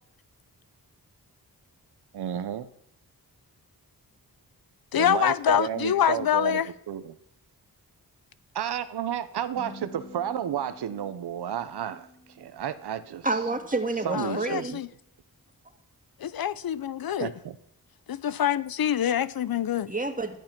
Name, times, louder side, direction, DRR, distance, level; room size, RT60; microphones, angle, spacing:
voice 1, 2.1-2.7 5.0-6.6 6.9-7.2 8.5-12.1 12.4-13.3 14.0-14.8 17.2-17.6, right 9 dB, 90° right, 0.8 m, -32 dB
voice 2, 4.9-6.7 14.1-14.9 16.2-17.3 18.1-19.9, left 9 dB, 65° left, 0.6 m, -25 dB
sound 1, 9.6-13.9, left 1 dB, 15° left, 5.0 m, -49 dB
voice 3, 13.2-14.7 19.9-20.4, right 3 dB, 20° right, 2.1 m, -29 dB
12.5 x 11.0 x 5.9 m
cardioid pair, 50°, 38 cm